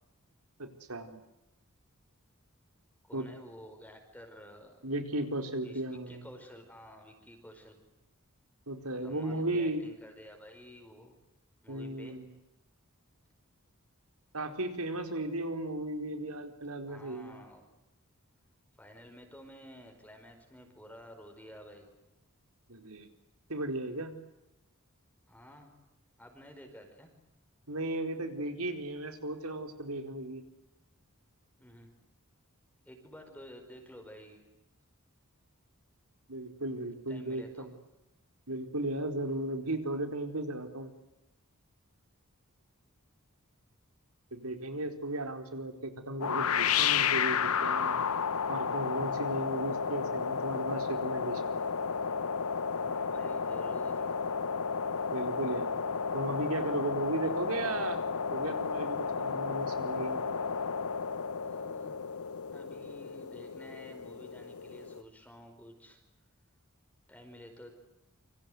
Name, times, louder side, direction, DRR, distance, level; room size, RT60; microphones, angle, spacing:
voice 1, 0.6-1.2 3.1-3.3 4.8-6.3 8.7-9.8 11.7-12.3 14.3-17.4 22.7-23.1 23.5-24.1 27.7-30.4 36.3-37.7 38.5-40.9 44.3-48.1 48.5-51.5 55.1-55.7 56.1-58.0 58.3-60.2, right 1 dB, 80° right, 6 dB, 4.5 m, -35 dB
voice 2, 3.0-4.8 5.6-7.8 9.0-11.1 11.6-12.2 16.9-17.6 18.7-21.9 25.3-25.7 26.2-27.1 31.6-31.9 32.8-34.5 37.1-37.7 52.7-54.1 61.3-62.0 62.5-66.0 67.1-67.7, equal, 5° left, 3 dB, 5.0 m, -51 dB
sound 1, 46.2-65.0, left 6 dB, 80° left, 1.0 m, -32 dB
28.5 x 26.0 x 8.0 m, 0.90 s
head